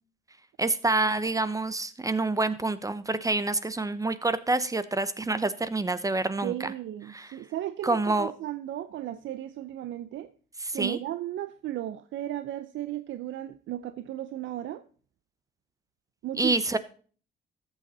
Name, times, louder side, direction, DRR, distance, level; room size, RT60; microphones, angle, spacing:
voice 1, 0.6-6.7 7.1-7.3 7.8-8.3 10.6-11.0 16.4-16.8, right 2 dB, 15° right, 14 dB, 0.8 m, -27 dB
voice 2, 6.4-10.3 10.7-14.8 16.2-16.6, right 13 dB, 75° right, 12 dB, 0.6 m, -35 dB
13.5 x 7.7 x 4.2 m, 0.42 s
cardioid pair, 90°, 20 cm